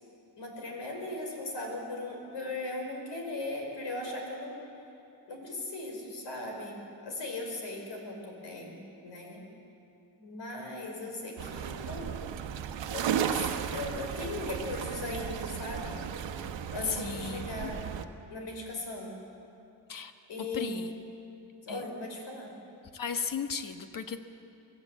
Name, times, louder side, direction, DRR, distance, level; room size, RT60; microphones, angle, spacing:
voice 1, 0.4-4.6 5.3-9.4 10.2-12.5 12.9-16.0 16.7-17.8 18.3-19.1 20.3-20.9 21.6-22.5, left 2 dB, 65° left, 1 dB, 5.4 m, -38 dB
sound 1, 11.4-18.0, right 8 dB, 65° right, 1.2 m, -35 dB
voice 2, 16.8-17.7 19.9-20.1 20.4-20.9 21.7-21.8 22.9-24.3, left 6 dB, 45° left, 8 dB, 1.3 m, -35 dB
23.5 x 14.5 x 8.4 m, 2.7 s
cardioid pair, 115°, 47 cm